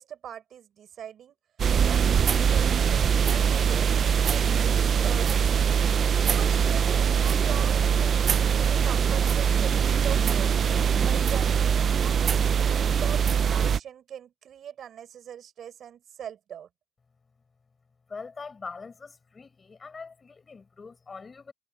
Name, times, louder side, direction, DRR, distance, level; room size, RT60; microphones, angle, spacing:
voice 1, 0.0-1.4 1.8-4.8 5.0-5.5 6.2-8.1 8.6-10.5 11.0-16.7, right 9 dB, 80° right, 4.8 m, -41 dB
sound 1, 1.6-13.8, right 7 dB, 55° right, 0.4 m, -22 dB
voice 2, 18.1-21.5, left 4 dB, 30° left, 7.4 m, -42 dB
wide cardioid pair, 170°, 0 cm